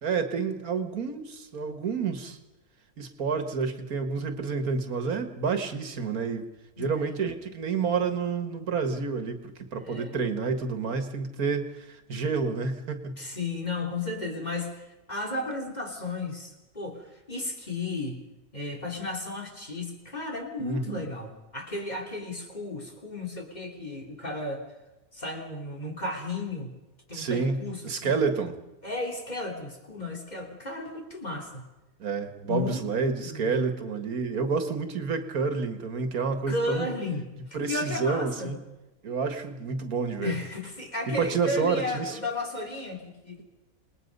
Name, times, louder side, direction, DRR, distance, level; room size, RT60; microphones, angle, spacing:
voice 1, 0.0-2.4 3.0-6.5 6.8-13.2 20.6-21.1 27.1-28.6 32.0-36.9 37.5-38.6 39.0-40.3 41.1-42.2, right 5 dB, 90° right, 7 dB, 2.1 m, -29 dB
voice 2, 6.8-7.2 9.8-10.2 13.2-18.2 18.5-24.6 25.1-26.7 27.1-28.1 28.8-31.6 32.4-32.8 33.2-33.7 36.5-37.3 37.7-38.5 40.2-43.4, left 2 dB, 30° left, 0 dB, 3.5 m, -34 dB
28.0 x 20.0 x 5.4 m, 1.0 s
omnidirectional pair, 1.5 m